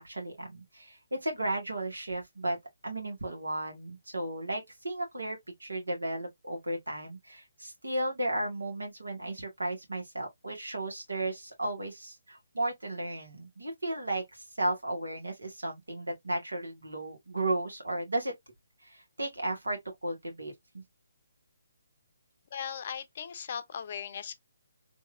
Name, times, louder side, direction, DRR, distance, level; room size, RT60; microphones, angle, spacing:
voice 1, 0.0-2.6 2.8-18.3 18.8-20.8, right 1 dB, 75° right, 1.8 m, -34 dB
voice 2, 22.5-24.3, left 8 dB, 45° left, 0.6 m, -38 dB
3.5 x 2.9 x 2.5 m
figure-of-eight pair, 140°, 0 cm